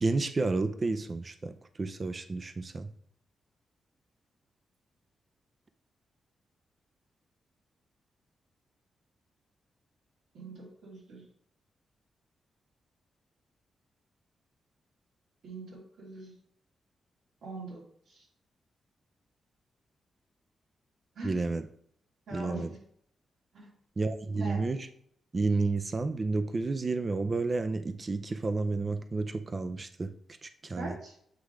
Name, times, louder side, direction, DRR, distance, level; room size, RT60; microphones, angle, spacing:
voice 1, 0.0-2.9 21.2-21.6 22.3-22.7 24.0-24.9 25.3-30.1 30.4-30.9, right 3 dB, 30° right, 9 dB, 0.5 m, -31 dB
voice 2, 10.3-11.2 15.4-16.3 17.4-17.8 18.1-18.2 21.1-21.4 22.3-22.8 23.5-23.7 24.4-24.6 30.8-31.1, right 2 dB, 80° right, -4 dB, 2.9 m, -42 dB
8.3 x 3.1 x 4.7 m, 0.65 s
cardioid pair, 110°, 0 cm